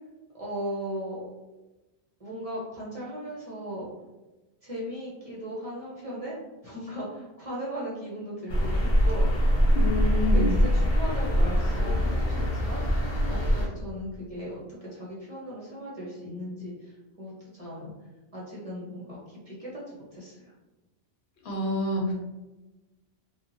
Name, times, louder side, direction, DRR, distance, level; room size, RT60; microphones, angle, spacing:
voice 1, 0.3-1.2 2.2-3.9 4.6-6.4 6.6-9.6 9.9-17.9 18.3-20.5, equal, 40° right, -6 dB, 0.6 m, -37 dB
sound 1, 8.5-13.7, equal, 50° left, 0.7 m, -23 dB
voice 2, 9.7-10.5 21.5-22.1, left 1 dB, 80° left, -1 dB, 0.9 m, -27 dB
2.8 x 2.1 x 2.6 m, 1.1 s
omnidirectional pair, 1.1 m